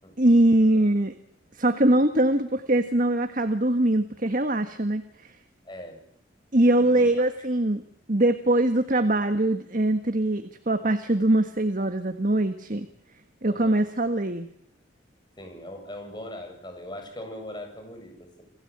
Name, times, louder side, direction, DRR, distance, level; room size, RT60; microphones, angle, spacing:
voice 1, 0.2-1.1 1.5-5.4 6.5-7.8 8.1-12.9 13.4-14.5, right 1 dB, 45° right, 8 dB, 1.6 m, -22 dB
voice 2, 5.6-6.0 6.8-7.1 13.5-13.8 15.4-18.4, left 1 dB, 25° left, 4 dB, 7.7 m, -40 dB
29.0 x 17.0 x 8.8 m, 0.68 s
head